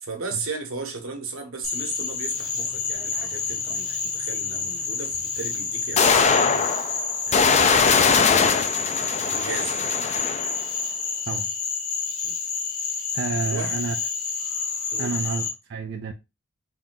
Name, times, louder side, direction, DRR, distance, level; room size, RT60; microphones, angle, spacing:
voice 1, 0.0-9.9 12.2-12.4 13.4-13.8 14.9-15.2, right 4 dB, 75° right, 1.0 m, -36 dB
Frog, 1.6-15.5, left 5 dB, 85° left, 1.1 m, -29 dB
sound 1, 3.2-3.3 5.1-5.2 6.0-10.6, left 5 dB, 35° left, 0.4 m, -21 dB
voice 2, 13.1-14.0 15.0-16.1, right 4 dB, 55° right, 0.4 m, -29 dB
3.4 x 2.7 x 3.7 m
head